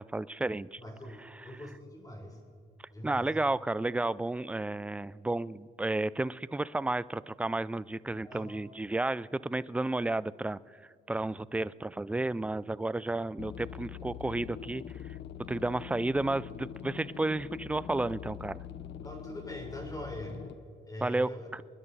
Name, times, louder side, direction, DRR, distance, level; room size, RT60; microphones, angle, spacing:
voice 1, 0.0-0.8 3.0-10.6 11.1-14.8 15.5-18.6 21.0-21.6, right 2 dB, 5° right, 18 dB, 0.3 m, -32 dB
voice 2, 0.8-2.4 2.9-3.3 8.2-8.5 19.0-20.4 20.8-21.5, left 1 dB, 20° left, 2 dB, 3.7 m, -43 dB
sound 1, 13.4-20.5, left 9 dB, 60° left, 0.7 m, -43 dB
27.5 x 11.0 x 4.1 m, 2.2 s
cardioid pair, 90°, 20 cm